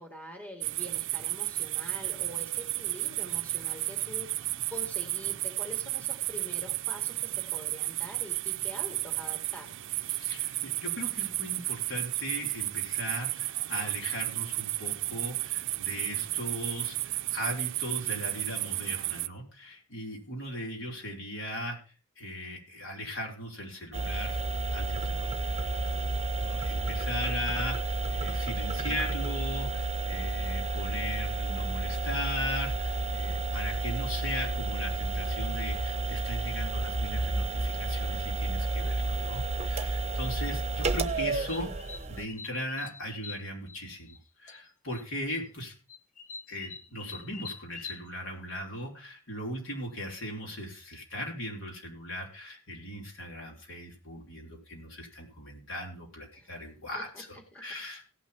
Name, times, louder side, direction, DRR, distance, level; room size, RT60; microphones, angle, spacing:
voice 1, 0.0-9.7 56.3-56.5 56.9-57.0 57.5-57.6, left 1 dB, 10° left, 1 dB, 2.4 m, -45 dB
sound 1, 0.6-19.3, right 17 dB, 60° right, 0.5 m, -33 dB
voice 2, 10.1-21.8 22.2-24.4 24.7-26.0 26.4-41.7 42.1-45.7 46.5-58.0, equal, 65° left, -1 dB, 5.0 m, -38 dB
sound 2, 23.9-42.3, right 2 dB, 30° right, 0.9 m, -31 dB
Great Tit, 40.9-44.2 44.5-45.0 45.3-48.0, left 5 dB, 40° left, 1.0 m, -45 dB
17.0 x 6.1 x 5.6 m, 0.34 s
head